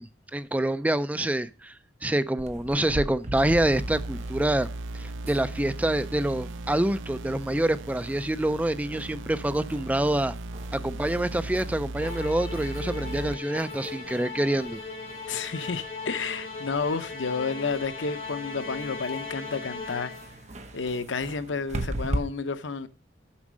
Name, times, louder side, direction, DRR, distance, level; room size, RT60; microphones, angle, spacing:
voice 1, 0.0-4.7 4.9-10.3 10.7-14.8, right 1 dB, 10° right, 0.3 m, -26 dB
sound 1, 2.4-22.2, right 1 dB, 35° right, 1.1 m, -41 dB
sound 2, 3.4-13.3, right 2 dB, 85° right, 0.5 m, -37 dB
Musical instrument, 11.9-20.5, left 4 dB, 35° left, 3.7 m, -38 dB
voice 2, 15.3-20.1 20.7-22.9, left 4 dB, 85° left, 0.8 m, -31 dB
7.3 x 6.3 x 6.1 m
head